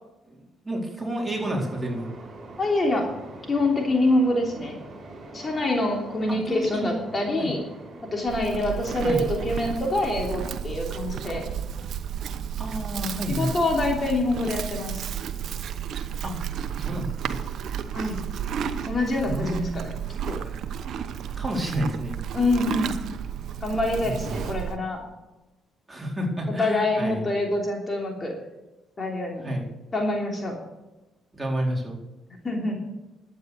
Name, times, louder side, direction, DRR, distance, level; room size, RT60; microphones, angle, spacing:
voice 1, 0.3-2.1 6.3-7.0 7.4-7.5 9.0-9.3 12.6-13.5 16.2-16.3 16.8-17.3 19.2-19.8 21.4-22.1 24.0-24.4 25.9-27.3 29.4-29.7 31.3-32.0, equal, 15° right, -2 dB, 4.4 m, -30 dB
sound 1, 1.3-10.4, right 2 dB, 45° right, 4.9 m, -44 dB
voice 2, 2.6-3.1 3.5-4.8 5.3-7.6 8.1-11.5 13.3-15.1 17.9-18.2 18.8-19.9 20.3-20.4 22.3-22.9 23.6-25.0 26.6-28.3 29.0-29.5 29.9-30.6 32.4-32.8, left 2 dB, 35° left, 1 dB, 3.2 m, -25 dB
Livestock farm animals working animals, 8.3-24.8, right 8 dB, 70° right, 0.9 m, -32 dB
12.0 x 9.3 x 6.6 m, 1.0 s
supercardioid pair, 70°, 0 cm